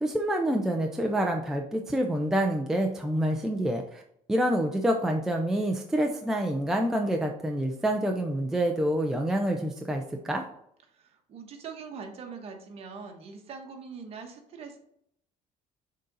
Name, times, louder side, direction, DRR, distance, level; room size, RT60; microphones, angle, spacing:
voice 1, 0.0-4.0 4.3-10.4, right 1 dB, 5° right, 2 dB, 0.5 m, -27 dB
voice 2, 10.9-14.8, right 5 dB, 40° right, 3 dB, 1.2 m, -42 dB
6.5 x 3.9 x 4.0 m, 0.72 s
cardioid pair, 155°, 15 cm